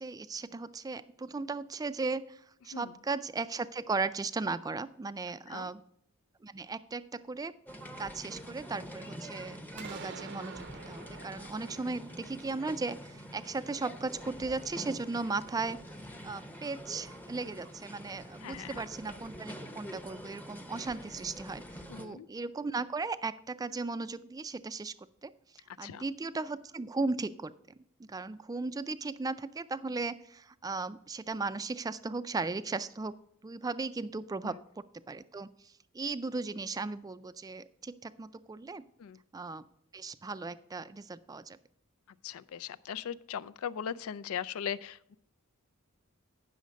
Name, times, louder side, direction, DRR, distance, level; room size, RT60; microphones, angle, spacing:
voice 1, 0.0-5.8 6.4-7.5 8.0-15.8 16.2-21.6 22.0-24.9 25.2-27.5 28.0-33.1 33.4-38.8 39.3-39.6 39.9-41.6, right 3 dB, 20° right, 14 dB, 0.3 m, -37 dB
sound 1, 7.7-22.1, equal, 10° left, 0.7 m, -46 dB
sound 2, 9.8-13.6, right 5 dB, 55° right, 0.6 m, -48 dB
voice 2, 18.4-18.9 21.9-22.3 25.8-26.0 34.4-34.5 39.0-39.2 42.2-45.2, left 8 dB, 90° left, 16 dB, 0.4 m, -39 dB
9.3 x 6.4 x 5.1 m, 0.73 s
head